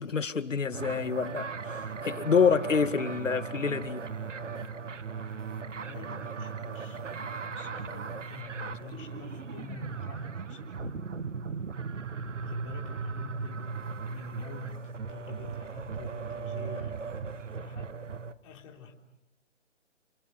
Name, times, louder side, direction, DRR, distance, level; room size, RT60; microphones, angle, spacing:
voice 1, 0.0-4.1, left 6 dB, 80° left, 2.1 m, -27 dB
sound 1, 0.7-18.3, right 5 dB, 75° right, 1.6 m, -37 dB
voice 2, 5.8-11.1 12.4-13.7 14.1-17.0 17.6-17.9 18.4-18.9, left 5 dB, 25° left, 3.7 m, -46 dB
30.0 x 28.5 x 6.7 m
hypercardioid pair, 160°, 37 cm